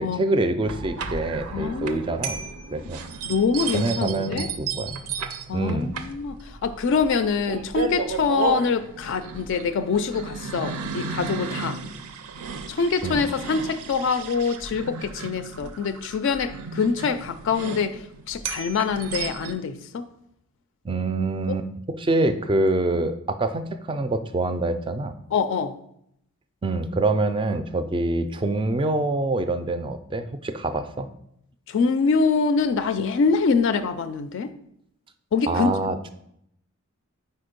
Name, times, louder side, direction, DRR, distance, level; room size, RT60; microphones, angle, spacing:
voice 1, 0.0-2.4 2.7-3.0 3.7-4.9 5.5-5.9 13.0-13.3 20.8-21.7 22.0-25.1 26.6-31.1 35.5-36.0, right 2 dB, 20° right, 10 dB, 0.3 m, -25 dB
sound 1, 0.6-19.5, right 5 dB, 75° right, 0.5 m, -34 dB
voice 2, 1.5-2.2 3.3-4.5 5.5-11.8 12.7-20.1 21.5-21.6 25.3-25.8 31.7-34.5 35.3-35.7, left 5 dB, 55° left, 11 dB, 0.3 m, -25 dB
4.5 x 4.3 x 5.1 m, 0.74 s
head